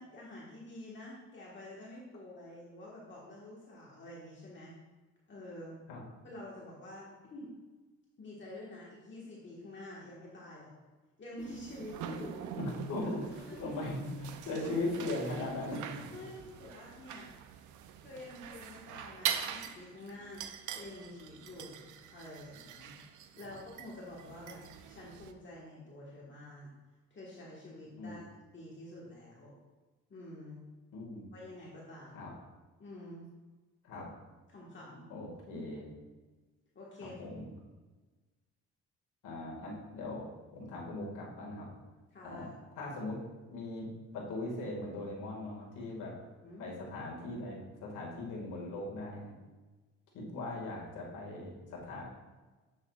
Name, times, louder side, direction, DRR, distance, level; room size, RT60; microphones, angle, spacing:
voice 1, 0.0-4.7 5.3-5.7 6.2-7.5 8.2-10.7 11.2-12.5 13.0-13.8 16.1-17.3 18.0-20.4 20.7-22.9 23.4-26.7 27.1-28.3 28.5-29.5 30.1-30.6 31.3-32.3 32.8-33.3 34.5-35.1 35.5-35.7 36.7-37.2 42.1-42.5 46.4-46.6, left 1 dB, 40° left, -5 dB, 1.5 m, -48 dB
sound 1, 11.4-25.3, right 9 dB, 80° right, 0.5 m, -43 dB
voice 2, 12.6-16.1 28.0-28.2 30.9-31.2 32.1-32.3 33.8-34.1 35.1-35.9 37.0-37.5 39.2-40.3 40.5-41.7 42.2-43.2 43.5-43.9 44.1-46.1 46.6-49.3 50.1-52.0, left 2 dB, 90° left, -3 dB, 2.0 m, -39 dB
7.8 x 6.2 x 2.4 m, 1.2 s
cardioid pair, 90°, 30 cm